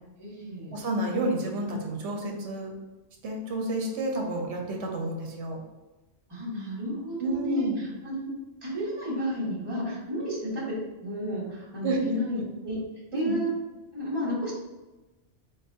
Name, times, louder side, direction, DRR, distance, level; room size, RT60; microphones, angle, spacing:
voice 1, 0.2-0.7 6.3-8.3 8.6-10.7 11.0-12.8 13.1-13.5 13.9-14.5, equal, 20° right, -6 dB, 1.3 m, -32 dB
voice 2, 0.7-2.7 3.2-5.6 7.2-7.8 10.1-10.3 11.8-12.0 12.3-12.4 13.1-13.3, right 1 dB, 70° right, 1 dB, 1.0 m, -30 dB
3.9 x 3.9 x 2.7 m, 1.1 s
omnidirectional pair, 1.2 m